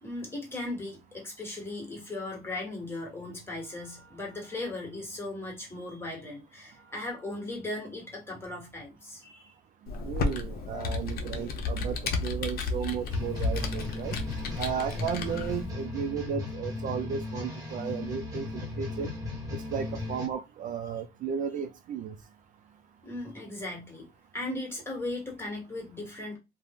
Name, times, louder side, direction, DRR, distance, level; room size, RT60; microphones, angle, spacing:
voice 1, 0.0-9.5 11.4-11.5 12.8-12.9 23.0-24.1 24.3-26.4, left 2 dB, 15° left, 1.4 m, -37 dB
Computer keyboard, 9.9-15.7, left 3 dB, 65° left, 0.7 m, -32 dB
voice 2, 10.0-14.2 14.6-19.2 19.7-22.2, right 7 dB, 50° right, 0.4 m, -34 dB
sound 1, 13.1-20.3, left 3 dB, 20° right, 1.2 m, -36 dB
2.4 x 2.0 x 3.5 m
cardioid pair, 110°, 17 cm